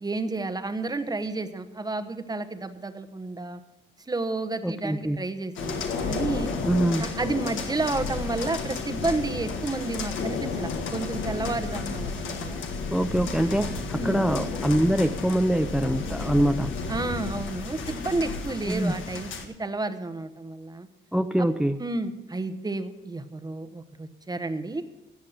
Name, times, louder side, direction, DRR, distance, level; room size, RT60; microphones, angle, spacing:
voice 1, 0.0-3.6 4.1-6.5 7.0-12.6 13.9-14.3 16.9-20.9 21.4-21.5 21.8-24.8, right 3 dB, 20° right, 10 dB, 1.1 m, -31 dB
voice 2, 4.6-5.2 6.6-7.1 12.9-16.7 18.7-18.9 21.1-21.8, right 1 dB, 5° right, 10 dB, 0.4 m, -24 dB
sound 1, 5.6-19.5, left 4 dB, 75° left, 1.7 m, -32 dB
14.0 x 8.5 x 6.4 m, 1.1 s
cardioid pair, 90°, 20 cm